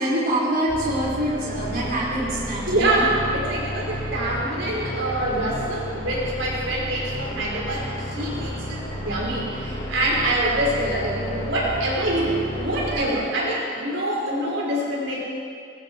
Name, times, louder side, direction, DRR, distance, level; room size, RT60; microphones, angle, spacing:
voice 1, 0.0-3.0 12.9-13.2, right 1 dB, 45° right, -6 dB, 4.9 m, -25 dB
sound 1, 0.7-13.0, equal, 30° left, 4.8 m, -32 dB
voice 2, 2.7-15.2, right 1 dB, 60° right, -4 dB, 5.0 m, -25 dB
25.5 x 21.5 x 4.7 m, 2.3 s
head